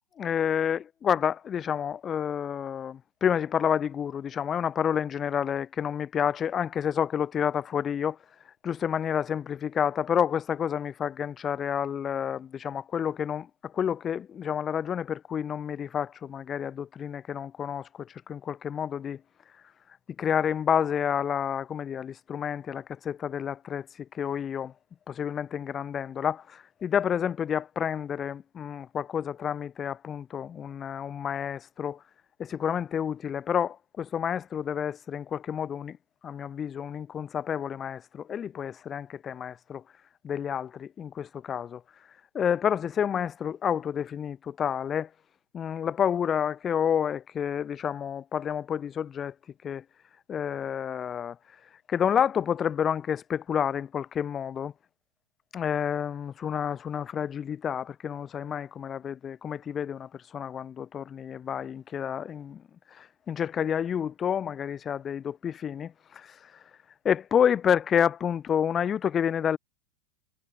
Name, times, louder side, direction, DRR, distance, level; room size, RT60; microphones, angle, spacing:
voice 1, 0.2-8.2 8.6-19.2 20.2-24.7 25.1-32.0 32.4-36.0 36.2-39.8 40.2-41.8 42.3-45.1 45.5-49.3 49.6-49.8 50.3-51.4 51.9-54.7 55.5-62.6 62.9-66.5 67.0-69.6, left 8 dB, 25° left, 0.5 m, -29 dB
figure-of-eight pair, 90°, 0 cm